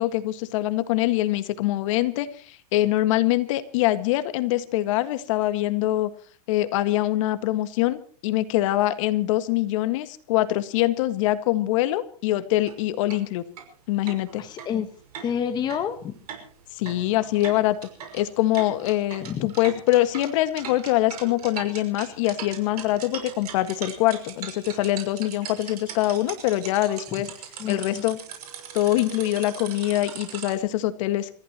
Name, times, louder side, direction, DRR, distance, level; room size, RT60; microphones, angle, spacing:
voice 1, 0.0-6.1 6.5-13.4 13.9-14.4 16.7-17.9 18.1-27.3 27.7-28.2 28.7-31.3, left 15 dB, 55° left, 11 dB, 1.8 m, -24 dB
sound 1, 12.6-12.7 13.1-13.2 13.6-13.7 14.1-30.6, right 8 dB, 75° right, 6.0 m, -39 dB
voice 2, 14.4-14.9 15.2-16.1 19.2-19.5 27.6-28.0, left 8 dB, 20° left, 8 dB, 1.2 m, -29 dB
28.5 x 15.0 x 3.0 m, 0.43 s
supercardioid pair, 145°, 20 cm